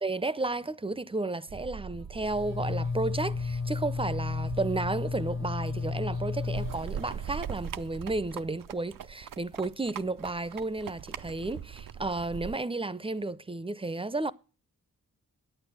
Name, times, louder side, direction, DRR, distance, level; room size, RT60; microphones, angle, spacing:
voice 1, 0.0-14.3, right 2 dB, 15° right, 0.5 m, -32 dB
sound 1, 1.5-8.4, right 6 dB, 90° right, 1.4 m, -45 dB
sound 2, 2.2-7.6, left 4 dB, 35° left, 0.7 m, -33 dB
sound 3, 6.5-12.6, right 9 dB, 70° right, 0.5 m, -40 dB
8.9 x 8.8 x 6.1 m
cardioid pair, 45°, 35 cm